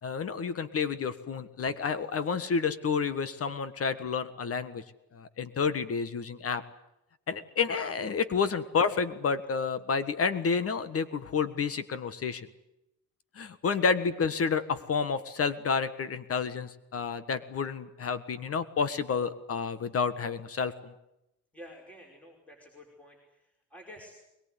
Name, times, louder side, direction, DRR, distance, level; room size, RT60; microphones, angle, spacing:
voice 1, 0.0-4.8 5.1-6.6 7.3-12.5 13.3-20.9, left 5 dB, 40° left, 13 dB, 1.6 m, -30 dB
voice 2, 21.5-24.2, equal, 5° left, 0 dB, 5.2 m, -50 dB
22.5 x 22.0 x 9.8 m, 0.87 s
cardioid pair, 140°, 35 cm